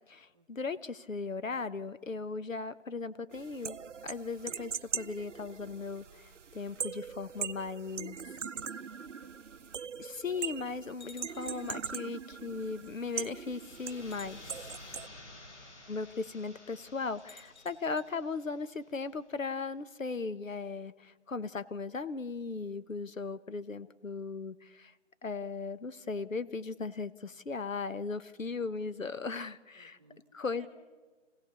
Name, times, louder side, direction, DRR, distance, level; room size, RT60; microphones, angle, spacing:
voice 1, 0.1-8.2 10.0-14.7 15.9-24.9 25.2-30.0 30.3-30.7, left 4 dB, 85° left, 14 dB, 1.1 m, -37 dB
sound 1, 3.3-15.1, right 6 dB, 70° right, 0.7 m, -41 dB
voice 2, 9.0-9.7 14.7-15.5 17.7-17.9 29.7-30.2 30.6-30.7, right 3 dB, 5° right, 2 dB, 1.1 m, -63 dB
sound 2, 9.3-9.4 10.2-10.3 11.0-11.8 13.0-13.1 14.0-14.9 17.2-18.1, left 3 dB, 35° left, 1.9 m, -56 dB
sound 3, 13.3-18.9, left 2 dB, 65° left, 6.6 m, -53 dB
28.5 x 17.0 x 6.9 m, 1.3 s
figure-of-eight pair, 165°, 38 cm